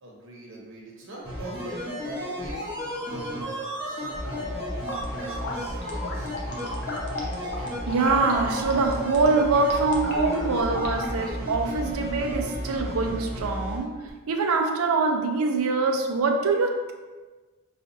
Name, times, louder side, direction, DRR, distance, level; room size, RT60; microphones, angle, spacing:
voice 1, 0.0-3.5 3.8-4.5 4.8-6.8, right 1 dB, 55° right, -3 dB, 0.9 m, -43 dB
sound 1, 1.2-13.8 14.1-14.2, equal, 10° right, 1.1 m, -33 dB
sound 2, 4.2-11.3, left 2 dB, 55° left, 0.6 m, -35 dB
voice 2, 7.6-13.9 14.3-16.9, right 3 dB, 80° right, 3 dB, 0.5 m, -24 dB
5.0 x 2.4 x 2.6 m, 1.3 s
head